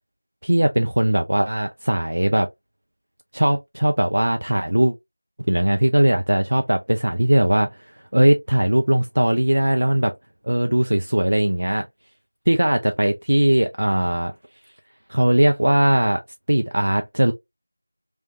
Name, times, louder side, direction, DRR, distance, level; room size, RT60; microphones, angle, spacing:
voice 1, 0.4-2.5 3.3-4.9 5.5-10.1 10.4-11.9 12.5-14.3 15.1-16.2 16.5-17.3, right 1 dB, 65° right, 0.5 m, -19 dB
3.2 x 3.0 x 2.7 m
figure-of-eight pair, 175°, 0 cm